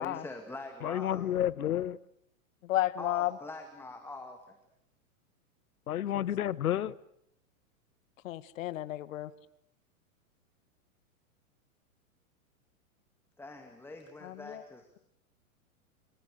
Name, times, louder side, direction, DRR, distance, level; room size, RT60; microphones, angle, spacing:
voice 1, 0.0-1.3 3.0-4.6 13.4-15.0, left 2 dB, 5° left, 2.3 m, -44 dB
voice 2, 0.8-2.0 5.9-6.9, left 11 dB, 75° left, 1.1 m, -30 dB
voice 3, 2.6-3.3 6.1-6.3 8.2-9.3 14.2-14.6, left 14 dB, 60° left, 1.5 m, -32 dB
28.5 x 25.5 x 6.6 m
hypercardioid pair, 120°, 44 cm